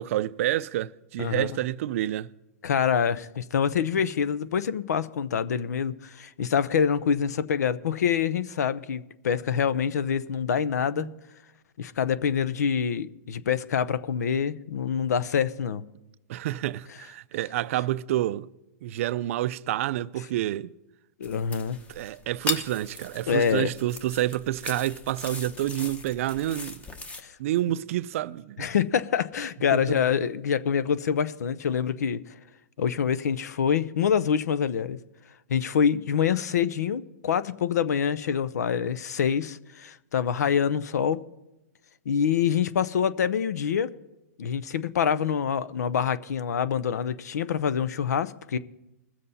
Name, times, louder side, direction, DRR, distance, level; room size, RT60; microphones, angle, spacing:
voice 1, 0.0-2.3 3.9-4.0 10.9-11.2 16.3-18.5 18.8-20.7 21.9-26.8 27.4-28.7 29.7-29.8, right 14 dB, 55° right, 0.4 m, -28 dB
voice 2, 2.6-11.1 11.8-15.8 21.2-21.8 23.3-23.7 27.2-27.3 28.6-32.2 32.8-35.0 35.5-41.2 42.1-43.9 44.4-48.6, left 7 dB, 80° left, 0.7 m, -26 dB
sound 1, 21.2-27.2, left 3 dB, 15° left, 1.0 m, -38 dB
21.0 x 7.6 x 4.1 m
hypercardioid pair, 140°, 9 cm